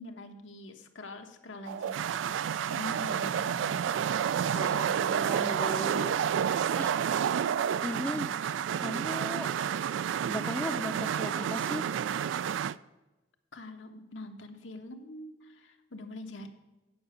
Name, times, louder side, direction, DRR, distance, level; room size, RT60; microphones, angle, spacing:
voice 1, 0.0-2.3 2.7-4.0 13.5-16.5, left 2 dB, 85° left, 4 dB, 1.2 m, -44 dB
sound 1, 1.7-12.7, right 8 dB, 85° right, 0.3 m, -30 dB
voice 2, 4.5-6.1 6.4-6.9 7.8-8.3 8.8-9.5 10.3-11.9, left 1 dB, 5° left, 6 dB, 0.5 m, -37 dB
9.4 x 5.8 x 6.9 m, 1.1 s
head